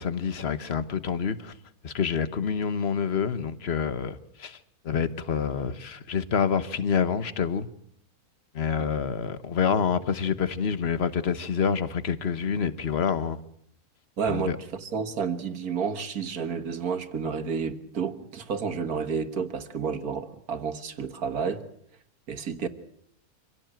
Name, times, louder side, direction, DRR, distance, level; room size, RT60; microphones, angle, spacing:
voice 1, 0.0-1.5 1.8-4.6 4.8-7.7 8.5-13.4 14.3-14.6, left 6 dB, 45° left, 1.4 m, -27 dB
voice 2, 14.2-21.7 22.3-22.7, right 6 dB, 80° right, 2.1 m, -30 dB
26.0 x 17.0 x 9.0 m
omnidirectional pair, 1.6 m